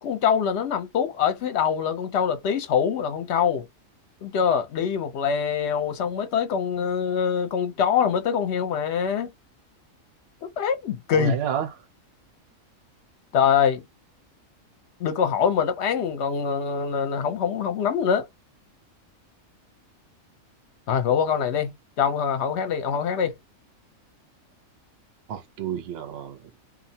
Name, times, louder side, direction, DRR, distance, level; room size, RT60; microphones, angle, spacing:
voice 1, 0.0-3.7 4.2-9.3 10.4-11.4 13.3-13.8 15.0-18.3 20.9-23.3, left 7 dB, 60° left, 0.8 m, -24 dB
voice 2, 11.1-11.7 25.3-26.6, right 9 dB, 60° right, 0.7 m, -30 dB
2.6 x 2.1 x 2.7 m
omnidirectional pair, 1.4 m